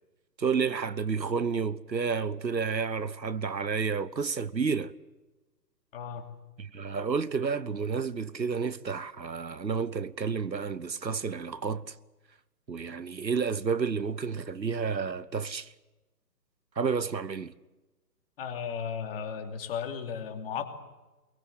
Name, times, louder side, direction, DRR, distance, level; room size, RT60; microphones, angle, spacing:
voice 1, 0.4-4.9 6.6-11.9 12.7-15.7 16.8-17.5, right 5 dB, 85° right, 1.3 m, -30 dB
voice 2, 5.9-6.3 18.4-20.7, left 7 dB, 35° left, 2.9 m, -35 dB
23.0 x 23.0 x 7.8 m
figure-of-eight pair, 140°, 50 cm